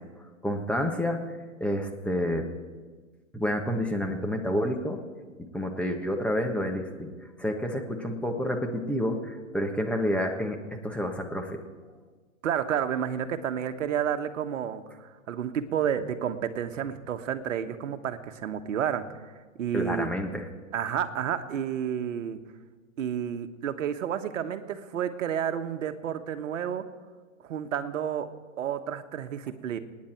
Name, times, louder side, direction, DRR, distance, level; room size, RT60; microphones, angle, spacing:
voice 1, 0.4-1.2 1.6-2.5 3.3-5.0 5.5-7.1 7.4-11.6 19.7-20.5, equal, 5° left, 3 dB, 1.5 m, -29 dB
voice 2, 12.4-19.0 19.6-20.1 20.7-22.4 23.0-26.8 27.4-28.3 28.6-29.8, right 9 dB, 70° right, 8 dB, 1.4 m, -30 dB
27.5 x 9.8 x 4.6 m, 1.4 s
hypercardioid pair, 120°, 40 cm